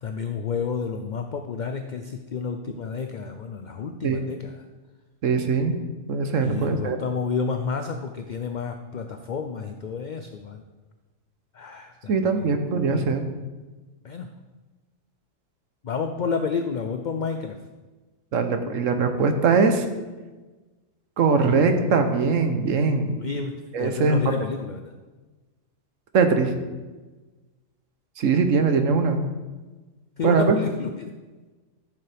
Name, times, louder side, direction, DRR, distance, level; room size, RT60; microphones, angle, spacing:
voice 1, 0.0-4.6 6.4-10.6 11.5-12.5 12.9-13.1 14.0-14.3 15.8-17.6 23.2-24.9 30.2-31.1, left 5 dB, 60° left, 6 dB, 0.5 m, -30 dB
voice 2, 5.2-5.8 6.1-7.0 12.1-13.2 18.3-19.8 21.2-23.2 23.7-24.2 26.1-26.5 28.2-29.2 30.2-30.6, right 4 dB, 75° right, 6 dB, 1.2 m, -21 dB
13.0 x 6.9 x 3.4 m, 1.2 s
omnidirectional pair, 1.3 m